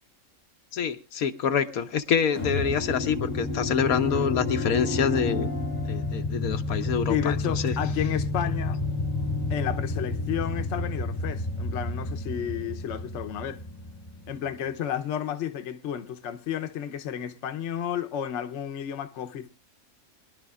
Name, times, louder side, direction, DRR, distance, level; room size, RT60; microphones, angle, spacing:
voice 1, 0.7-5.5 5.9-7.7, left 7 dB, 80° left, 1.3 m, -26 dB
sound 1, 2.3-14.6, left 2 dB, 25° left, 1.0 m, -30 dB
voice 2, 7.1-8.8 9.5-13.6 14.3-19.5, left 10 dB, 60° left, 1.1 m, -32 dB
23.5 x 11.5 x 2.4 m
omnidirectional pair, 1.5 m